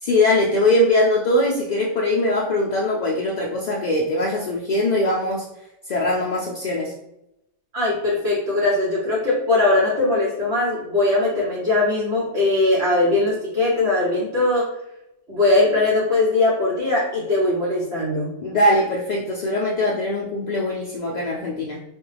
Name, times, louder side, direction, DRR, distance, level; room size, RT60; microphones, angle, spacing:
voice 1, 0.0-5.5 5.9-6.9 18.4-21.8, left 1 dB, 65° left, -3 dB, 0.4 m, -21 dB
voice 2, 7.7-14.7 15.3-18.3, left 2 dB, 60° right, -7 dB, 1.3 m, -20 dB
4.1 x 2.3 x 3.3 m, 0.86 s
omnidirectional pair, 1.3 m